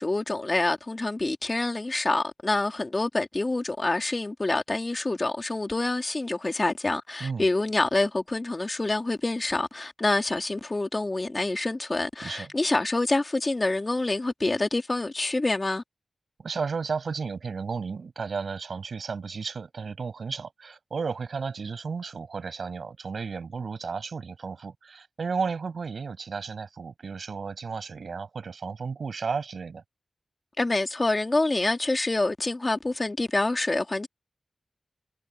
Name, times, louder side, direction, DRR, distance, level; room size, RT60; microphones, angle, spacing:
voice 1, 0.0-15.8 30.6-34.1, left 2 dB, 35° left, 2.4 m, -27 dB
voice 2, 16.4-29.8, right 5 dB, 90° right, 5.9 m, -33 dB
wide cardioid pair, 80°, 0 cm